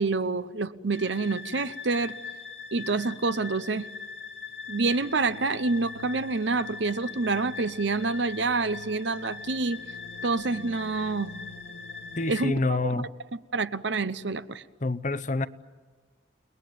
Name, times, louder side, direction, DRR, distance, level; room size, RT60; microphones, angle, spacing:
voice 1, 0.0-2.2 2.7-3.9 4.7-9.8 10.2-11.3 12.3-12.9 13.5-14.6, right 3 dB, 65° right, 0.9 m, -27 dB
sound 1, 0.9-12.5, left 5 dB, 75° left, 2.6 m, -41 dB
voice 2, 12.2-13.1 14.8-15.5, left 2 dB, 40° left, 0.8 m, -27 dB
29.5 x 20.0 x 9.4 m
head